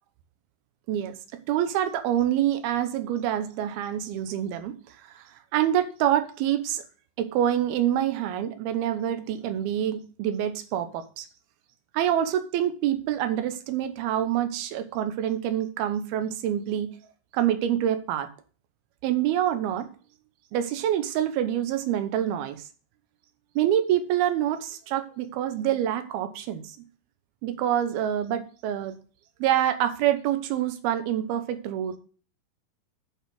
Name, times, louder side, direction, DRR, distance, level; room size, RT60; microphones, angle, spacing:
voice 1, 0.9-6.8 7.2-11.3 11.9-16.9 17.3-18.3 19.0-19.9 20.5-22.6 23.6-26.8 27.4-29.0 29.4-32.0, right 11 dB, 90° right, 9 dB, 2.8 m, -26 dB
8.4 x 5.5 x 6.2 m, 0.39 s
omnidirectional pair, 4.3 m